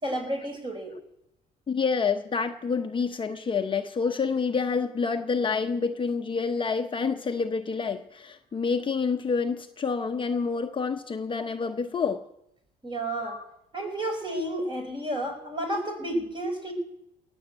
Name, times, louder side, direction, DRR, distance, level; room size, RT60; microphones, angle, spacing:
voice 1, 0.0-0.9 12.8-13.4 13.7-16.7, right 1 dB, 30° right, 4 dB, 4.8 m, -31 dB
voice 2, 1.7-12.2 13.2-13.4, left 5 dB, 30° left, 5 dB, 0.9 m, -28 dB
19.0 x 7.1 x 8.2 m, 0.81 s
cardioid pair, 110°, 17 cm